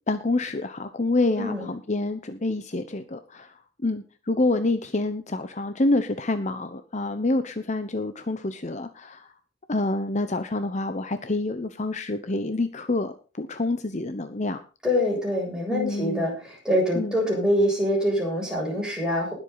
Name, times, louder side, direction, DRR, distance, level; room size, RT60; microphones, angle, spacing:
voice 1, 0.1-3.5 3.8-9.3 9.7-14.6 15.7-16.3 16.9-17.2, left 2 dB, 40° left, 10 dB, 0.9 m, -27 dB
voice 2, 1.4-1.7 14.8-19.3, equal, 5° right, -2 dB, 7.0 m, -25 dB
20.0 x 8.1 x 4.1 m, 0.34 s
head